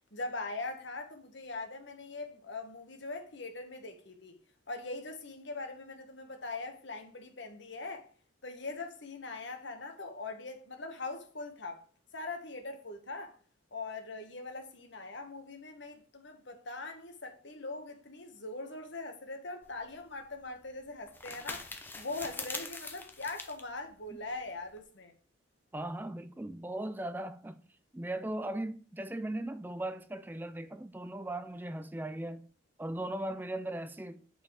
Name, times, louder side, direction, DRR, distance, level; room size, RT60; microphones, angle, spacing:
voice 1, 0.1-4.4 4.7-8.1 8.4-11.8 12.1-13.4 13.7-21.7 22.0-25.1, left 3 dB, 60° left, 1.4 m, -41 dB
sound 1, 19.6-24.8, left 3 dB, 10° left, 0.7 m, -44 dB
voice 2, 25.7-27.6 27.9-32.5 32.8-34.4, right 1 dB, 10° right, 0.3 m, -38 dB
8.4 x 4.3 x 4.8 m
head